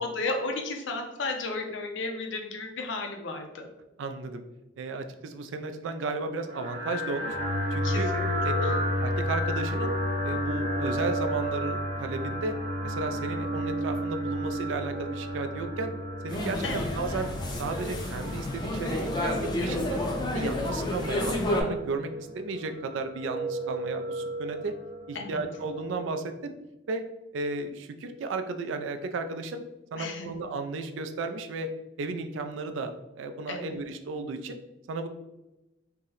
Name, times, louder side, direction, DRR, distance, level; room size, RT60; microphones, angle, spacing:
voice 1, 0.0-3.7 7.8-8.3 8.6-8.7 16.6-16.9 25.1-25.4 30.0-30.3 33.5-33.8, left 3 dB, 80° left, 4 dB, 0.5 m, -33 dB
voice 2, 4.0-4.4 4.8-7.4 7.7-8.1 8.4-8.8 9.0-9.9 10.2-12.5 12.8-15.9 16.2-17.3 17.6-20.0 20.3-24.7 25.1-26.5 26.9-27.0 27.3-29.6 29.9-31.7 32.0-34.6 34.9-35.1, right 3 dB, 85° right, 8 dB, 0.3 m, -34 dB
sound 1, 6.5-26.2, equal, 35° right, 0.7 m, -32 dB
sound 2, 16.3-21.6, left 1 dB, 25° left, 0.4 m, -30 dB
2.7 x 2.0 x 3.8 m, 0.97 s
head